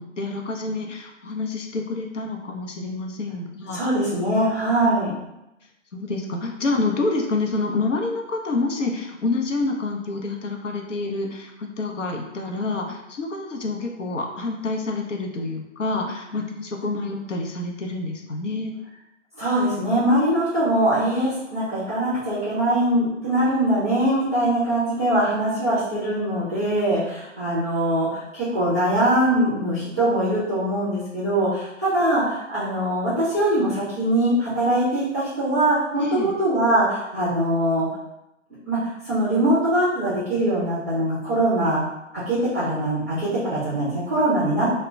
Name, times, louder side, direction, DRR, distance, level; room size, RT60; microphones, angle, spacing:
voice 1, 0.0-3.8 4.8-4.9 5.9-18.7 36.0-36.3, left 3 dB, 75° left, 1 dB, 0.6 m, -28 dB
voice 2, 3.7-5.1 19.4-37.9 38.7-41.8 42.3-44.6, right 1 dB, 15° right, -11 dB, 0.4 m, -22 dB
2.1 x 2.1 x 3.6 m, 0.89 s
figure-of-eight pair, 145°, 38 cm